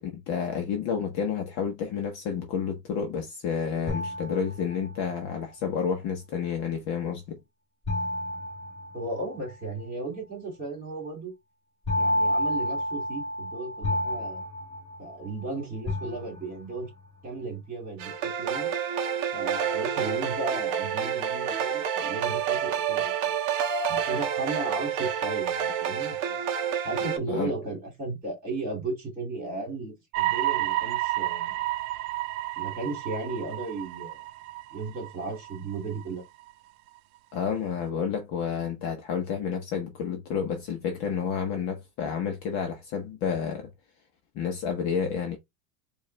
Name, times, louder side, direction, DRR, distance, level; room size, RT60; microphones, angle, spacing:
voice 1, 0.0-7.4 27.3-27.5 37.3-43.7 44.3-45.4, left 7 dB, 35° left, 0.9 m, -30 dB
sound 1, 3.9-5.1 7.9-9.5 11.9-15.4 15.9-16.8, left 1 dB, 10° left, 1.7 m, -30 dB
voice 2, 8.9-11.3 12.0-14.4 15.0-16.9 17.2-18.7 19.3-23.4 23.9-26.4 26.8-31.6 32.6-34.2 34.7-36.2, right 3 dB, 20° right, 2.7 m, -35 dB
sound 2, 18.0-27.2, right 8 dB, 35° right, 0.8 m, -28 dB
sound 3, 30.1-36.0 36.5-36.6, right 16 dB, 65° right, 0.6 m, -31 dB
4.7 x 2.6 x 3.2 m
supercardioid pair, 155°, 47 cm